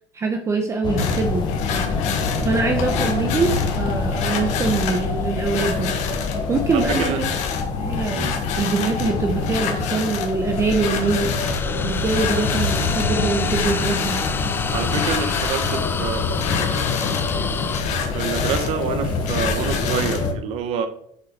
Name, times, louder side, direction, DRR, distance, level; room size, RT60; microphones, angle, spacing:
voice 1, 0.1-1.5 2.4-3.5 3.8-5.9 6.5-7.4 7.8-8.2 8.6-11.3 11.8-14.2, right 4 dB, 20° right, 4 dB, 0.9 m, -23 dB
sound 1, 0.8-20.3, left 4 dB, 35° left, 1.3 m, -25 dB
sound 2, 1.0-20.3, left 7 dB, 55° left, 1.6 m, -30 dB
sound 3, 2.7-7.8 10.3-17.8, left 5 dB, 15° left, 0.4 m, -32 dB
voice 2, 6.7-7.2 8.1-8.4 14.7-16.4 17.9-20.9, right 7 dB, 50° right, 9 dB, 1.1 m, -27 dB
6.9 x 5.3 x 6.8 m, 0.69 s
cardioid pair, 165°, 14 cm